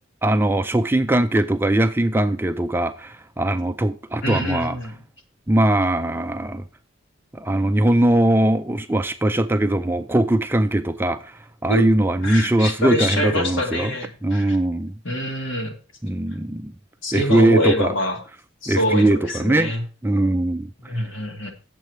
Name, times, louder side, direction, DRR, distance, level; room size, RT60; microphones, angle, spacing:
voice 1, 0.2-4.8 5.5-6.6 7.3-13.9 14.2-14.9 16.0-16.7 17.1-17.9 18.7-19.7 20.0-20.7, right 1 dB, 10° right, 0.4 m, -20 dB
voice 2, 4.2-5.0 11.7-11.9 12.2-14.6 15.0-15.7 17.0-18.2 18.6-19.8 20.9-21.5, left 1 dB, 65° left, 2.2 m, -25 dB
9.2 x 7.6 x 4.7 m
head